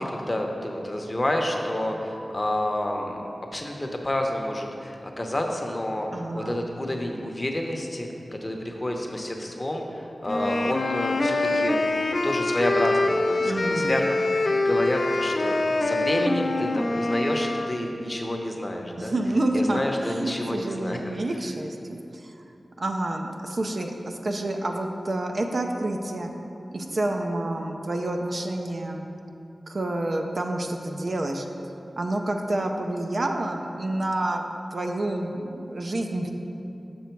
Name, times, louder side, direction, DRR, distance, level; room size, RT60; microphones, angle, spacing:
voice 1, 0.0-3.2 3.5-11.9 12.2-14.2 14.6-19.1 19.5-21.0, left 1 dB, 25° left, 2 dB, 0.8 m, -29 dB
voice 2, 6.1-6.6 13.4-14.1 19.0-22.3 22.8-26.3 26.7-29.1 29.7-31.5 32.0-36.3, right 1 dB, 55° right, 3 dB, 0.5 m, -28 dB
sound 1, 10.3-17.7, left 2 dB, 55° left, 0.4 m, -25 dB
7.0 x 6.1 x 4.5 m, 2.8 s
wide cardioid pair, 85°, 0 cm